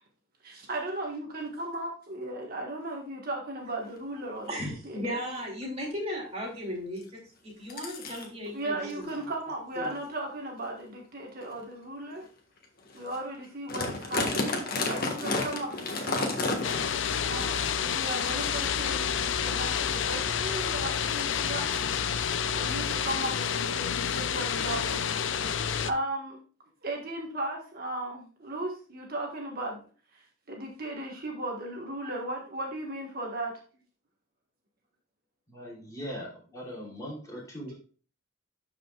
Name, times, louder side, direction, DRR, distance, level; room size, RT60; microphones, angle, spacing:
voice 1, 0.4-4.6 4.8-5.2 8.5-12.2 12.9-16.3 17.2-21.9 22.2-25.2 25.5-26.4 26.8-29.8 30.1-33.6, right 1 dB, 50° right, 0 dB, 1.5 m, -36 dB
sound 1, 3.8-3.9 4.4-4.6 5.2-5.3 5.6-5.9 7.0-7.1 7.7-8.3 9.0-9.2 9.8-10.0 10.6-10.7 11.4-11.5 12.1-12.2 12.6-12.7 12.9-13.2 13.4-17.1 17.4-17.5 18.3-18.4, left 2 dB, 50° left, 1.5 m, -31 dB
voice 2, 4.5-9.3 9.7-10.0, equal, 30° right, -1 dB, 2.7 m, -36 dB
sound 2, 16.6-25.9, left 7 dB, 70° left, 0.5 m, -29 dB
voice 3, 35.5-37.7, equal, 15° left, -4 dB, 3.0 m, -40 dB
12.5 x 5.1 x 2.4 m, 0.39 s
head